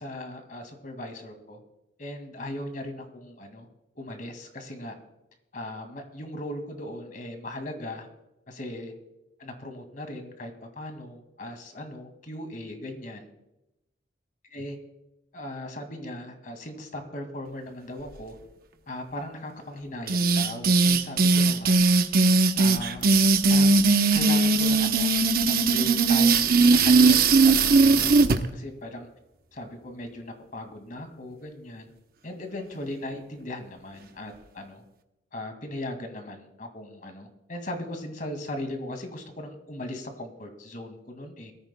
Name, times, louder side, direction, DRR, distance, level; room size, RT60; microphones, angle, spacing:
voice 1, 0.0-1.6 2.0-3.7 4.0-4.9 5.5-8.1 8.5-8.9 9.4-13.3 14.5-14.8 15.3-18.4 18.9-21.8 22.5-23.1 23.5-25.1 25.4-28.3 28.5-29.1 29.5-31.9 32.2-34.8 35.3-41.5, left 1 dB, 45° left, 6 dB, 2.2 m, -38 dB
sound 1, 20.1-28.4, right 3 dB, 55° right, 0.9 m, -19 dB
22.0 x 14.0 x 2.3 m, 0.92 s
head